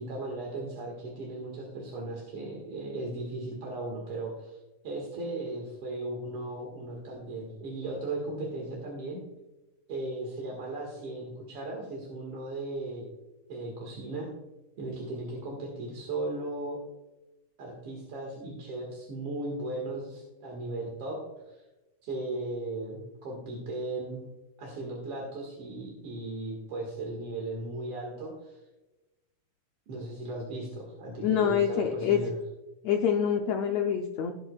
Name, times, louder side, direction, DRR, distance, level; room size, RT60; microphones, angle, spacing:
voice 1, 0.0-4.6 4.8-9.2 9.9-13.0 13.5-14.3 14.8-16.8 17.6-21.2 21.5-21.6 22.0-24.2 24.6-28.6 29.9-32.4, right 2 dB, 50° right, -1 dB, 2.4 m, -36 dB
voice 2, 31.2-32.2 32.8-34.3, left 8 dB, 85° left, 3 dB, 1.5 m, -26 dB
16.5 x 8.0 x 2.4 m, 1.0 s
omnidirectional pair, 3.9 m